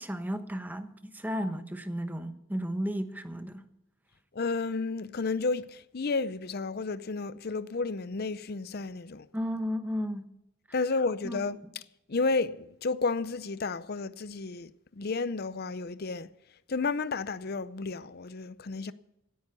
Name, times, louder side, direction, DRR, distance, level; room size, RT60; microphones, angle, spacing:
voice 1, 0.0-3.7 9.3-10.3 11.2-11.4, equal, 10° right, 0.9 m, -34 dB
voice 2, 4.3-9.3 10.7-11.6 12.1-16.3 16.7-18.9, left 3 dB, 45° left, 0.6 m, -32 dB
16.5 x 9.5 x 6.8 m
head